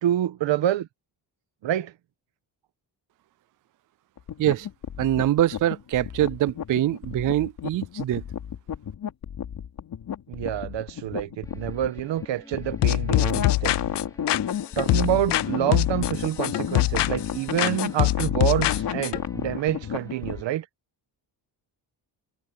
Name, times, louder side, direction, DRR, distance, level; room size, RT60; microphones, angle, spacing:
voice 1, 0.0-0.9 1.6-1.9 10.3-13.8 14.7-20.6, right 12 dB, 85° right, 1.3 m, -27 dB
sound 1, 4.2-20.4, left 9 dB, 55° left, 4.2 m, -32 dB
voice 2, 5.0-8.2, right 13 dB, 50° right, 0.5 m, -24 dB
sound 2, 11.4-20.5, left 1 dB, 10° left, 5.3 m, -52 dB
sound 3, 12.8-15.5 15.7-17.3 17.6-19.2, left 17 dB, 70° left, 0.6 m, -24 dB
wide cardioid pair, 175°, 43 cm